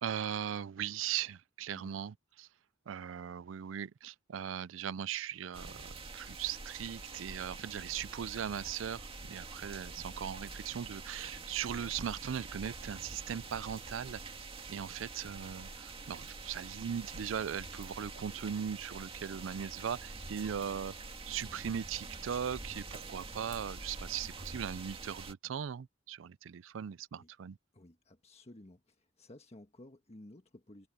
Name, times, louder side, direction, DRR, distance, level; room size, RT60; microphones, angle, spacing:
voice 1, 0.0-2.5 2.9-14.2 14.7-20.9 21.3-27.6, right 8 dB, 85° right, 0.4 m, -39 dB
sound 1, 5.5-25.3, right 3 dB, 30° right, 2.2 m, -46 dB
voice 2, 27.7-30.9, left 1 dB, 35° left, 1.5 m, -55 dB
head